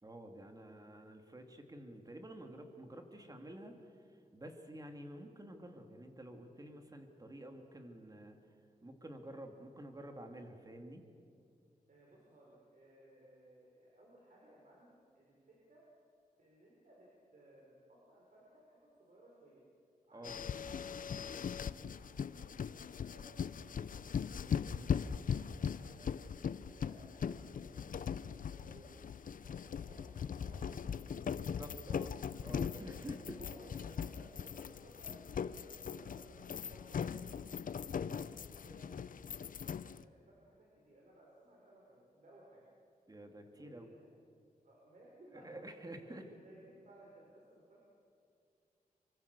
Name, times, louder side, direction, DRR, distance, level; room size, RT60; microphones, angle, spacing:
voice 1, 0.0-3.7 4.3-8.4 8.8-11.1 20.1-20.4 24.7-25.0 31.4-32.1 32.4-33.4 37.8-38.2 43.1-43.9 45.4-46.3, right 1 dB, 25° right, 4 dB, 2.6 m, -50 dB
voice 2, 11.9-15.8 16.4-19.6 20.1-21.3 22.0-24.1 24.5-24.8 25.3-32.0 32.7-37.2 37.8-42.6 43.5-44.0 44.6-45.5 46.1-47.9, right 1 dB, 60° right, -4 dB, 5.3 m, -61 dB
sound 1, 20.2-40.0, left 7 dB, 65° left, 0.6 m, -40 dB
26.0 x 24.5 x 6.9 m, 2.3 s
wide cardioid pair, 100°, 15 cm